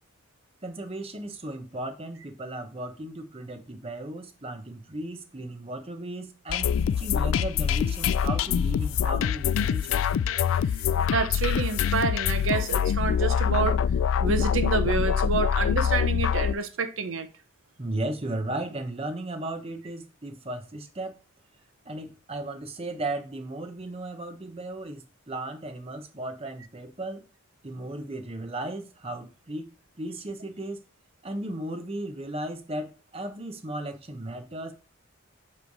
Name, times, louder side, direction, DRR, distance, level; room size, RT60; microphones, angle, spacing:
voice 1, 0.6-10.0 17.8-21.2 21.8-27.2 27.6-29.7 30.0-30.8 31.2-34.7, right 1 dB, 30° right, 0.9 m, -35 dB
sound 1, 6.5-16.5, left 8 dB, 80° left, 0.3 m, -25 dB
voice 2, 11.1-13.8 14.2-17.3, right 4 dB, 75° right, 0.8 m, -28 dB
7.8 x 3.3 x 4.7 m
head